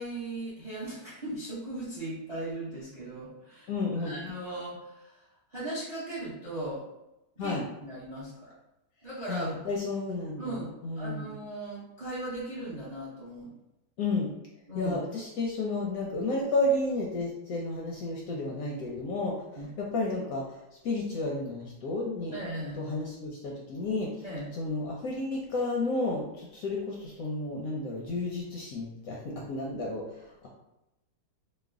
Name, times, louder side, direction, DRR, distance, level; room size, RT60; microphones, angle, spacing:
voice 1, 0.0-6.9 7.4-8.5 9.0-9.6 10.4-10.7 11.0-13.5 14.7-15.0 19.6-19.7 22.3-22.8 24.2-24.5, right 1 dB, 40° right, -7 dB, 0.6 m, -38 dB
voice 2, 3.7-4.2 7.4-7.6 9.3-11.3 14.0-14.3 14.7-19.5 19.8-20.4 20.8-22.3 22.8-24.2 24.5-30.5, left 2 dB, 70° left, -2 dB, 0.9 m, -32 dB
3.1 x 2.1 x 3.5 m, 0.91 s
omnidirectional pair, 1.8 m